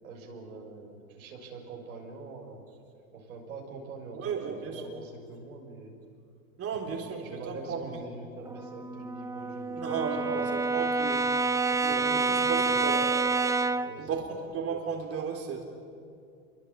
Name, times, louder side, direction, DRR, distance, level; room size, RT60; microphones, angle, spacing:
voice 1, 0.0-2.6 3.1-6.0 6.7-6.8 7.2-10.7 11.7-13.1 13.8-14.3, right 3 dB, 85° right, 1 dB, 6.6 m, -45 dB
voice 2, 4.1-4.8 6.6-8.0 9.8-11.4 11.8-13.2 14.0-15.7, right 6 dB, 35° right, 1 dB, 3.8 m, -34 dB
Brass instrument, 8.5-14.0, right 3 dB, 10° right, 0.6 m, -28 dB
27.5 x 23.5 x 8.7 m, 2.4 s
hypercardioid pair, 100°, 42 cm